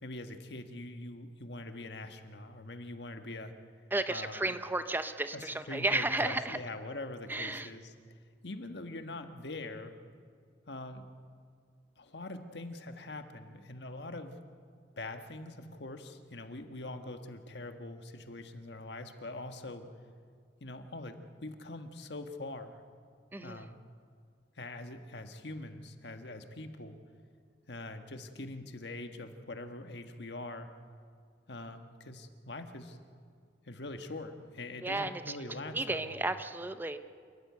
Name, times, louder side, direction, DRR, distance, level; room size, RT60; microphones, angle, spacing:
voice 1, 0.0-3.5 4.1-4.6 5.3-7.9 8.4-10.0 10.7-11.1 12.0-14.4 15.0-19.9 20.6-22.8 23.4-23.8 24.6-27.0 27.7-30.7 31.5-33.0 33.6-36.3, left 2 dB, 65° left, 7 dB, 1.5 m, -43 dB
voice 2, 3.9-6.6 7.3-7.7 23.3-23.7 34.8-35.2 35.7-37.0, right 2 dB, 10° right, 10 dB, 0.7 m, -33 dB
28.0 x 13.5 x 9.5 m, 2.1 s
head